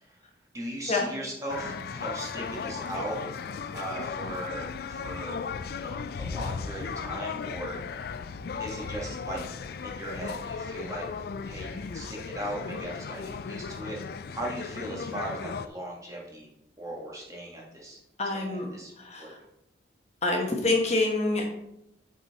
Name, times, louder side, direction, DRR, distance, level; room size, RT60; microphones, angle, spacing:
voice 1, 0.5-3.2 3.7-5.4 5.7-7.8 8.6-9.4 9.8-11.1 11.4-14.0 14.3-16.5 16.8-18.0 18.3-18.9 19.2-19.3, right 1 dB, 20° right, -3 dB, 1.5 m, -38 dB
sound 1, 1.5-15.7, left 5 dB, 55° left, 0.3 m, -36 dB
voice 2, 18.2-18.7 19.0-19.4 20.2-21.5, left 2 dB, 35° left, 0 dB, 1.1 m, -26 dB
8.2 x 4.2 x 4.1 m, 0.83 s
head